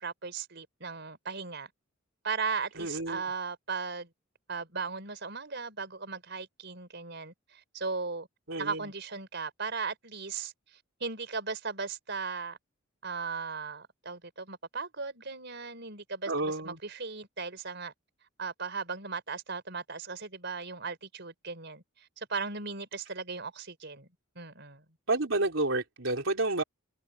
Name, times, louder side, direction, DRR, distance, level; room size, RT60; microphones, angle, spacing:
voice 1, 0.0-1.7 2.2-4.1 4.5-8.3 8.6-10.5 11.0-12.6 13.0-17.9 18.4-21.8 22.2-24.1 24.3-24.8, right 4 dB, 55° right, 4.9 m, -37 dB
voice 2, 2.8-3.2 8.5-8.8 16.3-16.8 25.1-26.6, right 2 dB, 70° right, 3.8 m, -30 dB
head